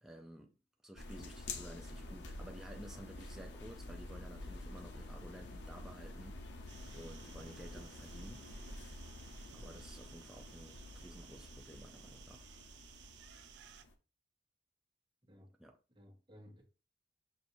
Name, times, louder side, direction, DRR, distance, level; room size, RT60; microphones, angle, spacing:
voice 1, 0.0-0.5 0.8-6.7 6.9-8.5 9.5-12.6 15.6-15.8, right 1 dB, ahead, 0.4 m, -53 dB
sound 1, 1.0-13.9, left 2 dB, 85° left, 0.6 m, -49 dB
sound 2, 6.7-13.8, right 10 dB, 80° right, 0.4 m, -58 dB
voice 2, 15.2-15.6 15.9-16.6, equal, 25° right, 1.0 m, -58 dB
6.2 x 2.6 x 2.6 m
head